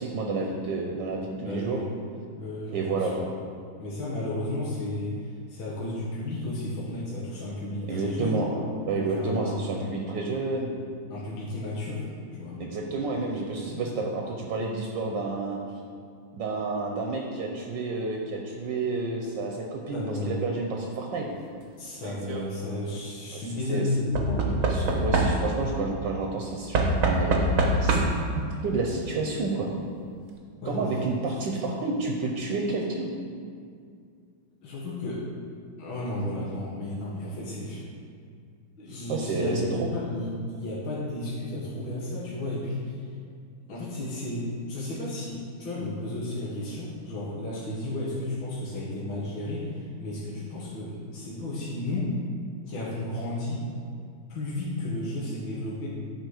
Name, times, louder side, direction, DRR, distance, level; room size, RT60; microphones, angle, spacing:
voice 1, 0.0-1.8 2.7-3.3 7.9-8.5 8.8-10.7 12.6-15.6 16.4-21.3 23.3-23.4 23.7-23.9 24.7-29.7 30.6-33.1 39.1-39.9, right 3 dB, 70° right, 0 dB, 1.3 m, -30 dB
voice 2, 1.4-1.9 2.4-3.1 3.8-8.3 8.9-9.6 11.1-12.0 12.3-12.6 13.7-13.8 19.9-20.4 21.8-25.1 30.6-31.1 31.7-31.9 34.6-35.3 35.8-37.8 38.8-43.0 43.7-52.1 52.6-53.6 54.3-55.9, left 1 dB, 75° left, -7 dB, 2.1 m, -33 dB
Knock / Wood, 21.9-22.4 24.1-25.7 26.7-28.3 29.4-29.5 29.7-29.8, right 2 dB, 55° right, 1.1 m, -24 dB
11.0 x 4.1 x 4.9 m, 2.2 s
omnidirectional pair, 2.2 m